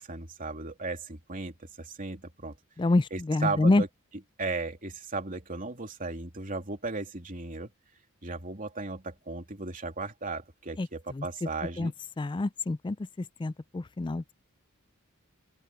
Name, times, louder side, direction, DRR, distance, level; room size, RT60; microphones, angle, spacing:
voice 1, 0.0-2.5 3.1-3.9 4.4-7.7 8.2-11.9, right 3 dB, 40° right, 3.2 m, -36 dB
voice 2, 2.8-3.8 10.8-10.9 11.2-11.3 11.8-11.9 12.2-13.0 13.4-14.3, left 2 dB, 20° left, 0.4 m, -26 dB
open air
head